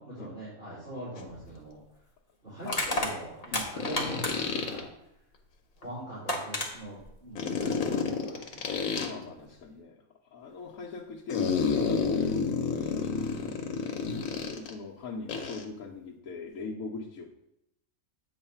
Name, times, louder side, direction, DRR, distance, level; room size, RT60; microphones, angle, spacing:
voice 1, 0.0-1.8 2.4-4.9 5.8-8.9 9.1-9.5 14.0-14.6, right 1 dB, 40° right, -11 dB, 3.0 m, -42 dB
sound 1, 1.2-1.3 3.8-4.8 7.4-9.1 11.3-14.7 15.3-15.6, left 5 dB, 90° left, 1.3 m, -30 dB
Crushing, 1.3-1.4 2.7-4.6 5.8-5.9 6.3-6.7, left 1 dB, 30° left, 1.0 m, -31 dB
voice 2, 9.1-10.0 10.3-13.4 14.5-17.3, left 4 dB, 75° left, -3 dB, 1.1 m, -41 dB
8.0 x 3.2 x 5.4 m, 0.82 s
omnidirectional pair, 1.5 m